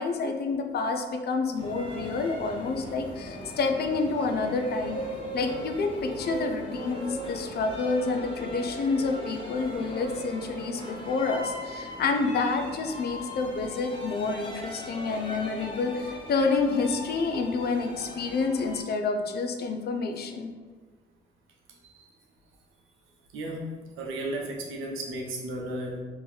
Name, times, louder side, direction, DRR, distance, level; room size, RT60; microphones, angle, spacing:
voice 1, 0.0-5.0 5.3-20.5, left 4 dB, 55° left, 5 dB, 0.5 m, -28 dB
sound 1, 1.5-18.8, equal, 25° left, 0.9 m, -38 dB
voice 2, 24.0-26.0, right 1 dB, 85° right, -1 dB, 0.8 m, -34 dB
2.9 x 2.6 x 3.8 m, 1.4 s
cardioid pair, 90°, 20 cm